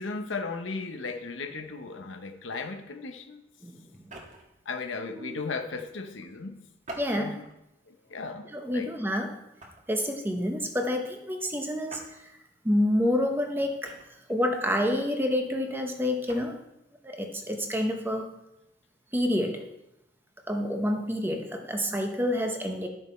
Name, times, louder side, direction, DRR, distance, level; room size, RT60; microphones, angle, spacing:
voice 1, 0.0-3.4 4.6-6.6 7.2-7.4 7.9-8.9, left 4 dB, 85° left, 6 dB, 1.0 m, -36 dB
sound 1, 3.9-4.6 6.8-7.6 8.2-8.4 9.6-10.0 11.9-12.1 13.8-14.4 16.1-16.5, right 1 dB, 40° right, 1.6 m, -45 dB
voice 2, 7.0-7.4 8.5-9.3 9.9-12.0 12.6-13.9 14.3-16.6 17.0-18.3 19.1-19.6 20.5-22.9, left 1 dB, 10° right, 4 dB, 0.9 m, -28 dB
12.0 x 6.6 x 4.5 m, 0.89 s
head